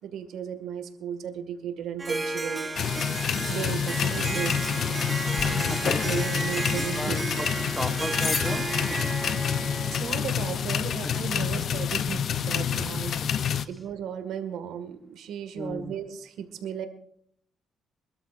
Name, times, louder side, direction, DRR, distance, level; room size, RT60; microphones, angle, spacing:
voice 1, 0.0-2.7 3.5-4.9 5.4-5.7 6.0-7.2 9.6-13.2 13.7-16.9, right 8 dB, 80° right, 8 dB, 1.7 m, -35 dB
Harp, 2.0-10.7, right 3 dB, 25° right, 1.0 m, -33 dB
sound 1, 2.7-13.6, left 8 dB, 60° left, 0.6 m, -28 dB
sound 2, 5.3-11.8, left 4 dB, 45° left, 2.3 m, -40 dB
voice 2, 5.4-6.4 6.8-7.2 7.7-8.7 11.0-11.6 12.7-12.9 13.6-13.7 15.5-15.9, left 1 dB, 10° left, 8 dB, 1.2 m, -35 dB
25.5 x 13.0 x 2.5 m, 0.64 s
cardioid pair, 90°, 0 cm